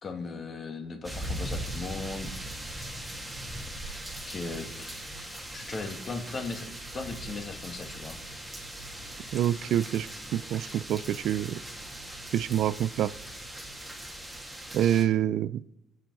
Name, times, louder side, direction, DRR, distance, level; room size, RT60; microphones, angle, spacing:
voice 1, 0.0-2.3 4.3-4.7 5.5-8.2, left 3 dB, 30° left, 4 dB, 2.2 m, -37 dB
sound 1, 1.0-15.0, right 1 dB, 5° right, 2.2 m, -40 dB
voice 2, 9.3-11.6 12.3-13.1 14.7-15.6, right 11 dB, 55° right, 18 dB, 0.4 m, -27 dB
25.5 x 8.5 x 4.8 m, 0.81 s
cardioid pair, 155°, 0 cm